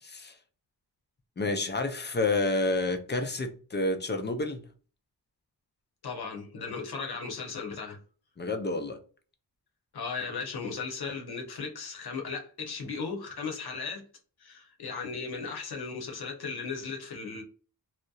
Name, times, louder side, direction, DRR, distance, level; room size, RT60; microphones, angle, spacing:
voice 1, 0.0-0.4 1.4-4.6 8.4-9.0, left 2 dB, 25° left, 0.5 m, -29 dB
voice 2, 6.0-8.0 9.9-14.0 14.4-17.4, left 5 dB, 60° left, 0.8 m, -36 dB
2.7 x 2.1 x 2.3 m
cardioid pair, 70°, 42 cm